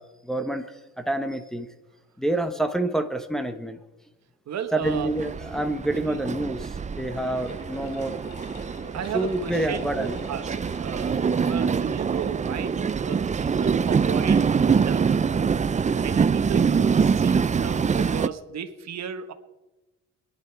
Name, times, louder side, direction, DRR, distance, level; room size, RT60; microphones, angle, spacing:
voice 1, 0.0-1.7 2.2-3.8 4.7-8.2 9.1-10.2, right 1 dB, ahead, 6 dB, 1.1 m, -28 dB
voice 2, 4.5-5.1 6.1-6.2 7.3-7.4 8.9-11.2 11.5-15.1 15.9-19.3, right 8 dB, 60° right, 8 dB, 1.4 m, -34 dB
Train, 4.8-18.3, right 6 dB, 25° right, 0.5 m, -24 dB
sound 1, 6.7-11.8, left 5 dB, 65° left, 2.4 m, -47 dB
23.0 x 11.0 x 4.6 m, 1.1 s
cardioid pair, 90°, 30 cm